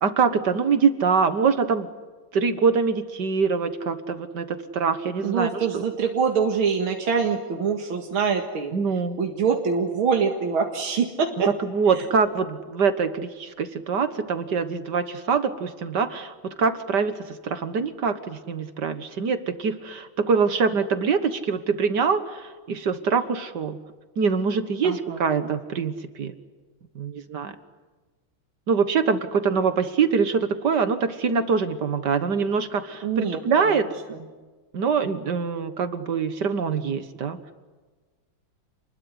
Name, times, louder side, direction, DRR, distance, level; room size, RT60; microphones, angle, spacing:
voice 1, 0.0-1.9 2.3-5.8 8.7-9.2 11.7-23.8 24.2-26.3 27.0-27.5 28.7-33.9 34.7-37.4, right 5 dB, 55° right, 11 dB, 1.9 m, -24 dB
voice 2, 5.2-8.7 9.2-11.5 11.9-12.0 24.8-25.5 33.0-33.8 34.1-34.2, right 6 dB, 80° right, 2 dB, 2.8 m, -25 dB
29.0 x 21.0 x 9.7 m, 1.3 s
omnidirectional pair, 2.3 m